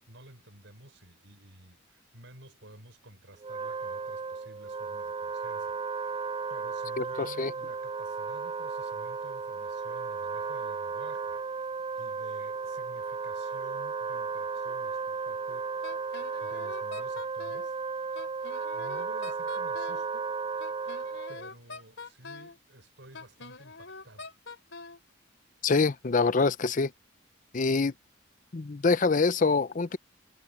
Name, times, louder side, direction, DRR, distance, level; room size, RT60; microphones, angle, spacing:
voice 1, 0.0-6.2 6.5-11.7 12.0-15.7 16.4-17.8 18.7-20.3 21.3-24.3, right 1 dB, 70° right, 6.0 m, -52 dB
Wind instrument woodwind instrument, 3.3-21.5, right 5 dB, 25° right, 0.3 m, -34 dB
Wind instrument woodwind instrument 2, 15.8-17.7 18.2-20.1 20.6-22.6 23.1-25.0, left 4 dB, 65° left, 5.1 m, -44 dB
voice 2, 25.6-26.9 27.5-27.9 28.5-30.0, left 4 dB, 40° left, 0.6 m, -25 dB
head